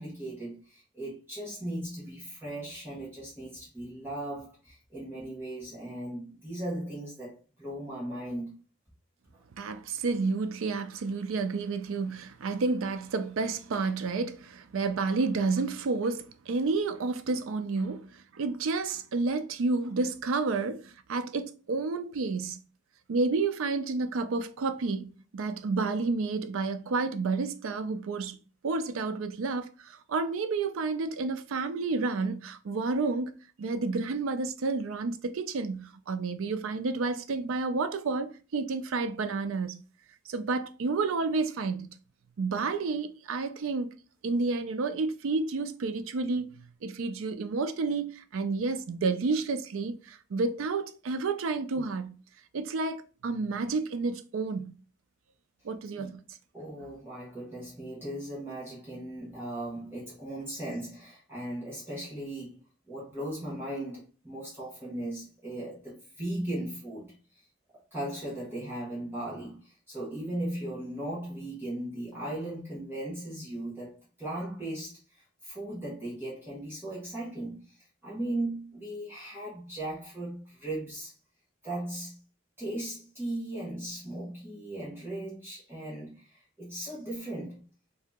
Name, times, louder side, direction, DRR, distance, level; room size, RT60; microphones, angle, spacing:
voice 1, 0.0-8.5 56.0-56.1 56.5-62.6 62.9-67.4 67.9-81.1 81.6-82.2 82.6-87.6, right 1 dB, 10° right, 1.2 m, -37 dB
voice 2, 9.6-22.6 23.1-28.4 28.6-33.3 33.6-39.8 40.3-41.9 42.4-43.9 44.2-52.1 52.5-54.7 55.6-56.2, right 3 dB, 75° right, 0.4 m, -30 dB
2.8 x 2.8 x 3.5 m
head